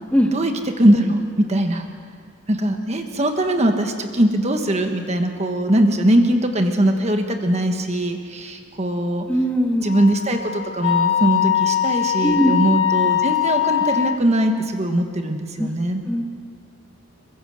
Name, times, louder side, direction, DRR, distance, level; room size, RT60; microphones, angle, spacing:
voice 1, 0.3-1.8 2.5-9.3 9.8-16.0, right 1 dB, 30° right, 5 dB, 1.4 m, -21 dB
voice 2, 9.3-9.8 12.2-12.5 15.6-15.7 16.1-16.2, equal, 5° left, 1 dB, 1.9 m, -19 dB
Wind instrument woodwind instrument, 9.9-14.2, left 10 dB, 60° left, 2.0 m, -21 dB
23.5 x 21.0 x 6.5 m, 2.1 s
head